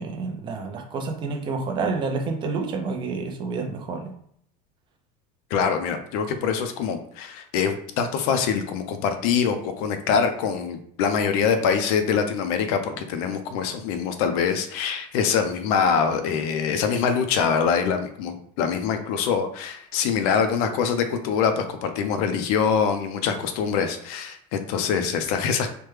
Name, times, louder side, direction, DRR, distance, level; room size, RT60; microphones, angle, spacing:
voice 1, 0.0-4.0, right 4 dB, 25° right, 3 dB, 0.4 m, -29 dB
voice 2, 5.5-25.7, left 6 dB, 70° left, 8 dB, 0.5 m, -24 dB
3.3 x 2.1 x 3.1 m, 0.66 s
cardioid pair, 160°, 20 cm